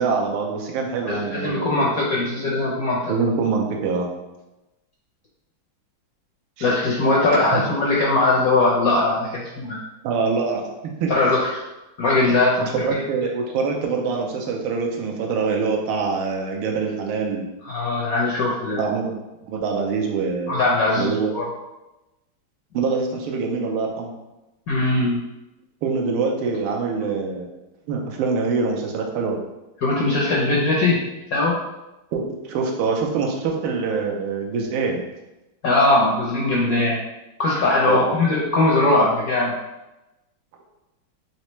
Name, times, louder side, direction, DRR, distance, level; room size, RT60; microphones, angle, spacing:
voice 1, 0.0-1.9 2.4-2.7 3.1-4.1 6.6-6.7 7.5-7.6 10.0-11.1 12.7-17.4 18.8-19.1 19.5-20.6 20.9-21.3 22.7-24.1 25.8-27.5 27.9-29.4 32.1-32.2 32.5-35.0 37.8-38.2, right 4 dB, 85° right, 1 dB, 1.5 m, -24 dB
voice 2, 1.1-3.1 6.6-9.8 11.1-11.6 12.0-13.0 17.6-18.8 20.5-21.4 24.7-25.2 29.8-31.0 31.3-31.5 35.6-37.0 37.4-39.6, left 2 dB, 75° left, -5 dB, 0.8 m, -20 dB
4.2 x 3.2 x 3.0 m, 1.0 s
omnidirectional pair, 2.3 m